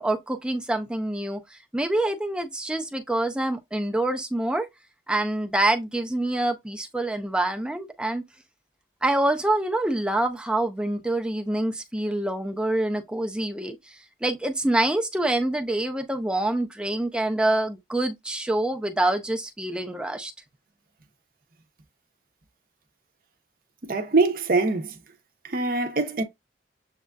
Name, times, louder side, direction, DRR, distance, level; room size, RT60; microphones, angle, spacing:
voice 1, 0.0-4.7 5.1-8.2 9.0-20.3, right 1 dB, 5° right, 0.5 m, -26 dB
voice 2, 23.8-25.0 25.4-26.2, right 3 dB, 50° right, 0.7 m, -23 dB
7.3 x 2.4 x 2.2 m
head